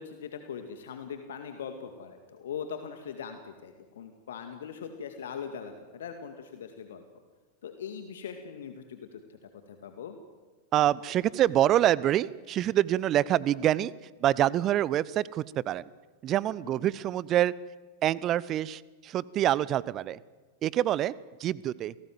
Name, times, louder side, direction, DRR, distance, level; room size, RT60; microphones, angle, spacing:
voice 1, 0.0-7.0 7.6-10.2 16.6-17.0, left 7 dB, 60° left, 6 dB, 2.1 m, -41 dB
voice 2, 10.7-13.9 14.2-15.9 16.2-17.5 18.0-20.2 20.6-21.1 21.4-21.9, right 12 dB, 30° right, 22 dB, 0.7 m, -26 dB
28.5 x 19.0 x 7.7 m, 1.3 s
figure-of-eight pair, 90°, 0 cm